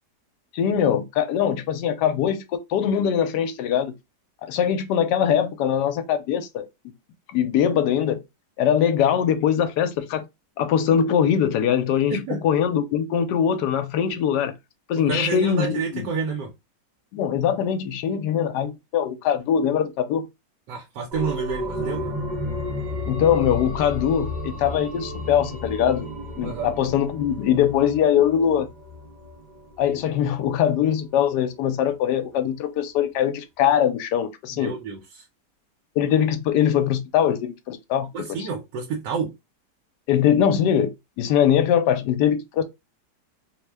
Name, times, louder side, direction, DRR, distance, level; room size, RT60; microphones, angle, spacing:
voice 1, 0.5-4.0 4.4-6.9 7.3-8.2 8.6-10.2 10.6-14.5 14.9-16.1 17.1-20.3 23.1-26.1 26.4-28.7 29.8-34.7 36.0-38.1 38.4-38.5 40.1-40.9 41.2-42.6, left 9 dB, 75° left, 1.1 m, -22 dB
voice 2, 12.1-12.4 15.1-16.5 20.7-22.1 26.4-26.7 34.5-35.2 38.1-39.3, right 5 dB, 80° right, 1.3 m, -29 dB
sound 1, 21.1-30.5 30.8-30.9, left 1 dB, 50° right, 0.5 m, -33 dB
3.0 x 2.1 x 3.2 m
omnidirectional pair, 1.9 m